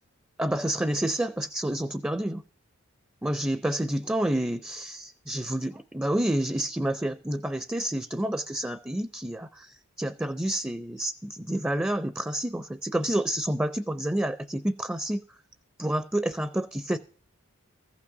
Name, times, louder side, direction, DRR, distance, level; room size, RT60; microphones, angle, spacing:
voice 1, 0.4-2.4 3.2-15.4 15.8-17.0, right 1 dB, 10° right, 0.4 m, -29 dB
15.0 x 6.0 x 6.6 m
head